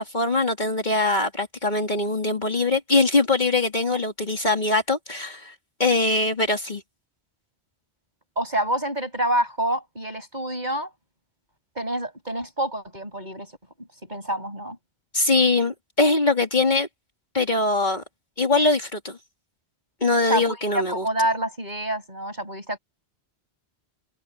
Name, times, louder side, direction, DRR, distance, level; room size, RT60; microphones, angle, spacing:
voice 1, 0.0-5.5 5.8-6.8 15.1-16.9 17.3-18.0 18.4-19.2 20.0-21.0, left 3 dB, 45° left, 2.9 m, -22 dB
voice 2, 8.4-10.9 11.7-13.5 13.8-14.8 20.2-22.8, right 1 dB, 45° right, 8.2 m, -27 dB
omnidirectional pair, 1.1 m